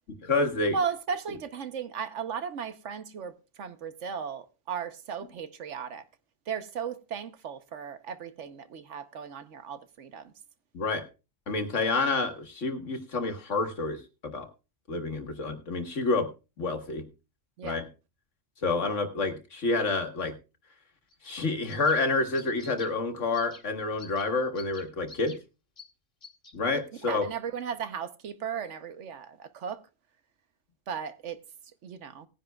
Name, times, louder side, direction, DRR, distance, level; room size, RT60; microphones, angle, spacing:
voice 1, 0.2-0.8 10.7-11.0 11.5-14.5 14.9-16.3 16.6-17.0 17.6-17.8 18.6-20.3 21.2-25.3 26.5-27.3, left 3 dB, 70° left, 1.9 m, -28 dB
voice 2, 0.7-6.0 6.5-10.3 17.6-17.8 27.1-29.8 30.9-31.4 31.8-32.3, right 7 dB, 70° right, 1.2 m, -36 dB
sound 1, 21.1-21.4 21.7-22.0 22.3-22.9 23.3-23.6 24.0-24.3 24.6-25.4 25.8-25.9 26.2-26.5, left 4 dB, 45° left, 2.1 m, -48 dB
19.0 x 10.5 x 2.3 m
omnidirectional pair, 1.3 m